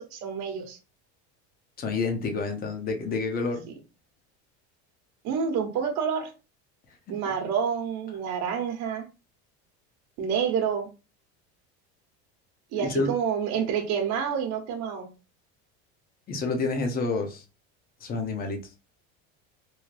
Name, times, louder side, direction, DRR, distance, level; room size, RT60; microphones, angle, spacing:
voice 1, 0.1-0.8 5.2-6.3 7.1-9.1 10.2-10.9 12.7-15.1, right 7 dB, 55° right, 1.0 m, -28 dB
voice 2, 1.8-3.6 12.7-13.1 16.3-17.4 18.0-18.6, left 3 dB, 25° left, 0.7 m, -28 dB
3.2 x 2.6 x 2.5 m
supercardioid pair, 135°, 33 cm